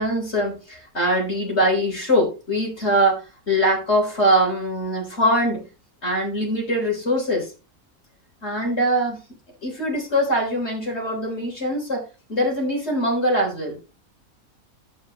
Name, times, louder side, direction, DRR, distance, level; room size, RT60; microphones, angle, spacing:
voice 1, 0.0-5.7 6.0-7.5 8.4-12.0 12.3-13.8, equal, 45° left, -1 dB, 3.8 m, -22 dB
10.5 x 8.4 x 2.9 m, 0.31 s
omnidirectional pair, 1.6 m